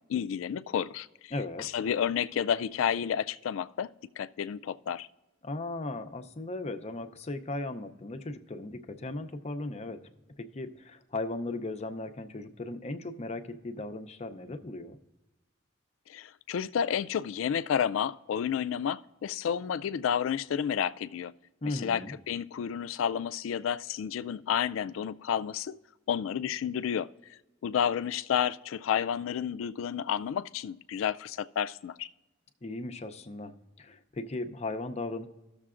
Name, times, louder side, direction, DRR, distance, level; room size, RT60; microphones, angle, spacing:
voice 1, 0.1-1.3 1.6-3.9 4.2-5.1 16.1-21.3 21.7-25.7 26.1-27.1 27.6-32.1, left 8 dB, 85° left, 0.3 m, -31 dB
voice 2, 1.3-1.7 5.4-10.0 10.5-15.0 21.6-22.1 32.6-35.3, left 2 dB, 35° left, 0.5 m, -37 dB
17.5 x 6.6 x 2.4 m
head